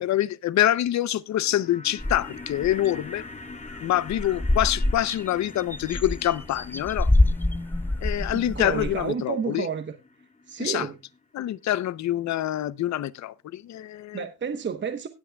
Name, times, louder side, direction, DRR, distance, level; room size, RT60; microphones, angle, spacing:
voice 1, 0.0-3.2 3.8-7.1 8.0-9.7 10.6-10.9 11.3-14.2, left 13 dB, 65° left, 0.7 m, -26 dB
sound 1, 1.2-11.5 11.7-11.8, left 3 dB, 25° left, 1.5 m, -45 dB
sound 2, 2.0-2.7 3.2-3.3 3.5-3.8 4.1-9.1, left 1 dB, 5° left, 0.6 m, -26 dB
voice 2, 8.3-9.9 10.5-11.0 14.1-15.1, right 6 dB, 40° right, 1.0 m, -30 dB
18.5 x 8.4 x 2.3 m
cardioid pair, 90°, 30 cm